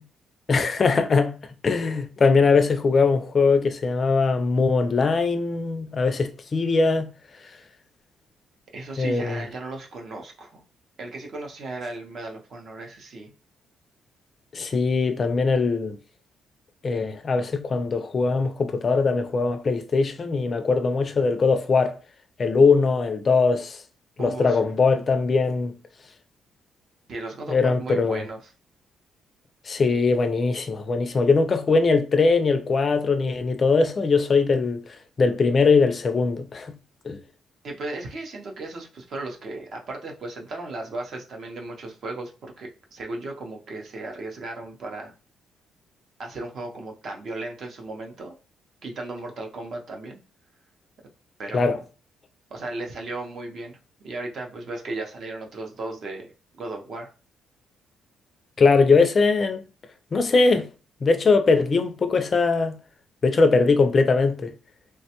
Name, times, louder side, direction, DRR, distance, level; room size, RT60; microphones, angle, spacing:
voice 1, 0.5-1.4 1.6-7.1 9.0-9.4 14.5-16.0 16.8-22.0 22.4-23.8 24.2-25.7 27.5-28.2 29.7-36.7 37.1-37.2 51.5-51.8 58.6-59.6 60.1-60.7 61.0-62.8 63.2-64.5, left 4 dB, 30° left, 0.4 m, -21 dB
voice 2, 8.7-10.6 11.0-13.3 24.2-24.7 27.1-28.4 37.6-45.1 46.2-48.4 48.8-50.2 51.4-51.8 52.5-53.8 54.0-56.3 56.6-57.1, right 2 dB, 45° right, 0.6 m, -35 dB
3.2 x 2.1 x 2.8 m
cardioid pair, 150°, 0 cm